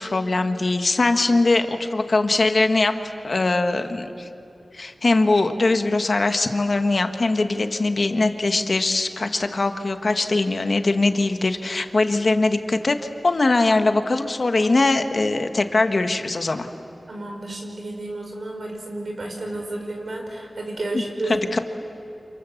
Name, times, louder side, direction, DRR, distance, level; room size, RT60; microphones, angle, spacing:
voice 1, 0.0-3.0 3.2-4.3 4.7-13.0 13.2-16.7 21.3-21.6, left 2 dB, 50° left, 7 dB, 1.3 m, -21 dB
voice 2, 17.1-21.4, right 2 dB, 65° right, 1 dB, 5.5 m, -32 dB
29.5 x 28.0 x 7.1 m, 2.7 s
wide cardioid pair, 95°, 0 cm